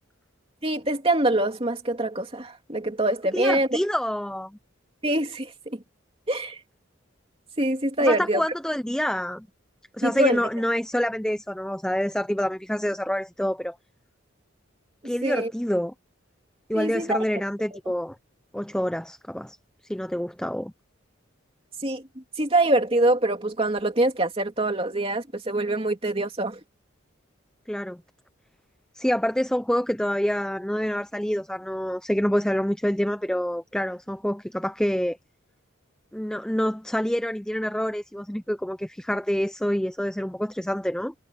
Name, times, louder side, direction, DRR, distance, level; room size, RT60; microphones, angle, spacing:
voice 1, 0.6-3.7 5.0-5.8 6.3-6.6 7.6-8.4 10.0-10.4 15.2-15.5 16.7-17.2 21.8-22.0 22.4-26.6, right 1 dB, 25° right, 2.9 m, -24 dB
voice 2, 3.3-4.6 8.0-9.5 10.0-13.8 15.0-15.9 16.7-18.2 18.5-19.6 19.8-20.7 27.7-28.0 28.9-35.2 36.1-41.1, equal, 5° left, 0.5 m, -27 dB
head